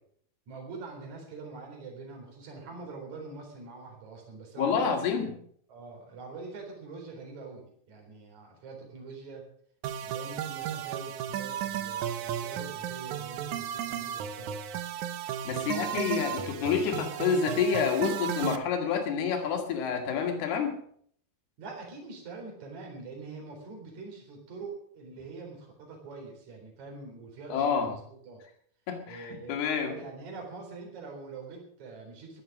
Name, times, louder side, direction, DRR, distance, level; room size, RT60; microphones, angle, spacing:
voice 1, 0.5-5.1 5.7-9.5 10.0-14.6 15.4-16.1 21.6-28.4 29.1-32.4, right 4 dB, 45° right, 0 dB, 5.2 m, -44 dB
voice 2, 4.6-5.4 15.5-20.8 27.5-27.9 28.9-30.0, left 6 dB, 75° left, 3 dB, 4.0 m, -28 dB
sound 1, 9.8-18.6, right 10 dB, 80° right, 1.7 m, -34 dB
14.5 x 12.0 x 6.2 m, 0.63 s
omnidirectional pair, 4.7 m